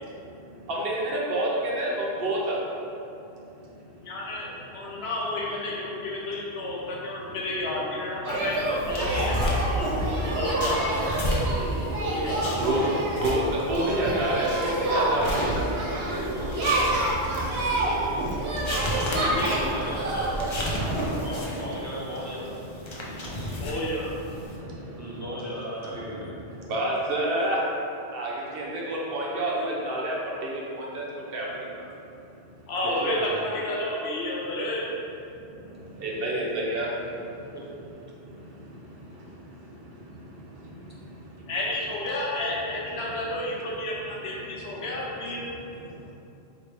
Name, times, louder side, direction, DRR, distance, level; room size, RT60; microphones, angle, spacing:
voice 1, 0.7-2.6 11.1-11.2 12.3-12.8 13.2-15.6 26.0-26.2 26.7-27.6 28.1-30.2 30.4-31.0 31.3-31.5 31.7-31.8 36.0-36.9, right 1 dB, 65° right, -4 dB, 0.9 m, -28 dB
voice 2, 4.0-9.9 10.3-11.0 12.0-12.6 18.9-19.5 23.6-24.1 32.7-34.9 41.5-45.5, left 1 dB, 90° left, -4 dB, 1.0 m, -31 dB
sound 1, 8.2-21.1, right 1 dB, 90° right, 1.0 m, -28 dB
sound 2, 8.9-24.6, equal, 45° left, 0.4 m, -34 dB
voice 3, 13.8-14.7 15.0-16.9 17.7-18.1 19.3-20.4 20.9-22.5 24.9-26.3 32.8-33.6 37.5-37.6, equal, 25° right, -8 dB, 0.4 m, -36 dB
3.1 x 2.6 x 4.3 m, 2.7 s
omnidirectional pair, 1.0 m